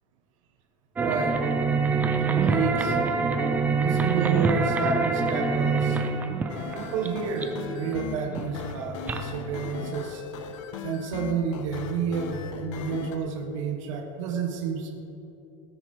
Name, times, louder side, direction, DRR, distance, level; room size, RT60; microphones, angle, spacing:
sound 1, 1.0-9.9, right 4 dB, 10° right, 0.5 m, -26 dB
voice 1, 1.0-1.4 2.4-3.0 3.8-6.0 6.7-10.2 10.8-14.9, right 5 dB, 85° right, 3 dB, 1.7 m, -30 dB
sound 2, 6.5-13.2, left 6 dB, 85° left, 1.1 m, -38 dB
19.0 x 8.2 x 4.6 m, 2.8 s
supercardioid pair, 180°, 16 cm